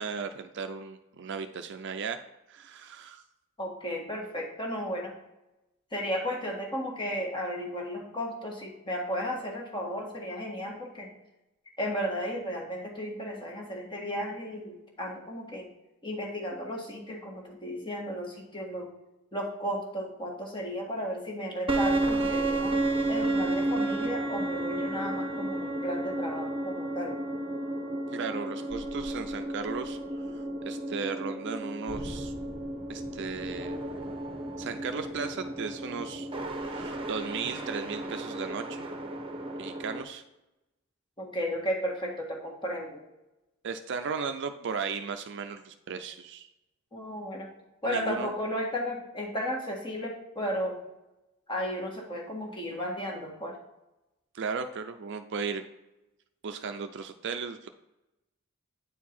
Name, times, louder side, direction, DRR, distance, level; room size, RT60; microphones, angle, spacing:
voice 1, 0.0-2.2 2.5-3.2 28.1-30.0 30.6-32.3 32.9-33.8 34.6-36.3 36.5-38.9 39.6-40.2 43.6-46.5 47.8-48.3 54.3-55.6 56.4-57.7, right 5 dB, 55° right, 7 dB, 0.4 m, -36 dB
voice 2, 3.6-5.1 5.9-11.1 11.8-15.7 16.0-18.9 19.3-22.7 23.1-27.2 41.2-43.0 46.9-47.5 47.8-50.8 51.5-53.6, equal, 25° left, 0 dB, 1.6 m, -34 dB
sound 1, 21.7-40.0, right 2 dB, 25° right, 0.9 m, -32 dB
9.1 x 4.6 x 4.3 m, 0.95 s
head